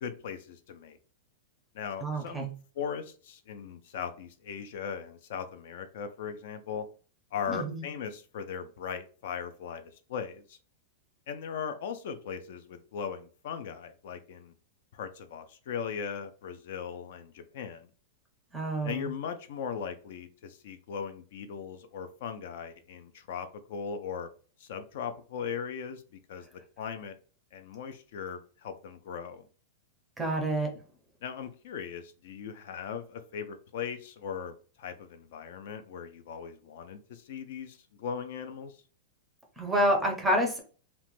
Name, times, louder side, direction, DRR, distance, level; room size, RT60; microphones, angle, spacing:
voice 1, 0.0-1.0 1.7-2.5 2.8-6.8 7.3-9.8 10.1-10.6 11.3-14.5 14.9-17.9 18.8-24.3 24.6-26.5 26.8-27.1 27.5-29.5 31.2-38.8, left 7 dB, 50° left, 8 dB, 0.3 m, -38 dB
voice 2, 2.0-2.5 7.5-7.9 18.5-19.1 30.2-30.7 39.6-40.6, right 1 dB, 5° right, 2 dB, 0.5 m, -28 dB
2.9 x 2.1 x 3.0 m, 0.39 s
supercardioid pair, 175°, 0 cm